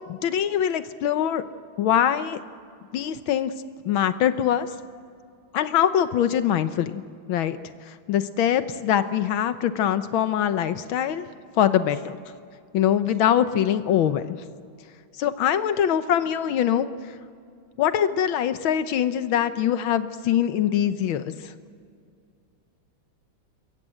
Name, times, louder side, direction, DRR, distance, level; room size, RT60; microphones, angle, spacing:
voice 1, 0.1-1.4 1.8-2.4 2.9-3.5 3.9-4.7 5.5-7.0 7.3-7.6 7.9-11.3 11.6-12.2 12.7-14.4 15.2-16.9 17.8-21.3, left 10 dB, 90° left, 11 dB, 1.8 m, -23 dB
27.0 x 22.5 x 7.8 m, 2.3 s
omnidirectional pair, 2.1 m